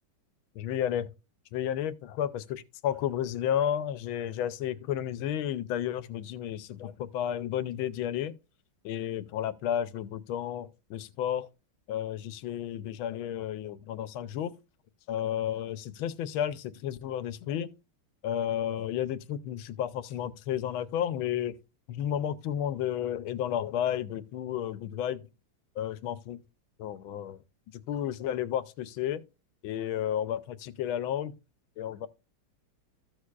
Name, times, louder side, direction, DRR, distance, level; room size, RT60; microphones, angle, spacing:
voice 1, 0.5-1.1 1.5-8.3 8.8-11.5 11.9-14.5 15.1-17.7 18.2-21.5 21.9-25.3 25.8-26.4 26.8-27.4 27.7-29.2 29.6-31.3 31.8-32.1, left 10 dB, 90° left, 1.5 m, -32 dB
14.5 x 6.4 x 2.4 m
omnidirectional pair, 2.2 m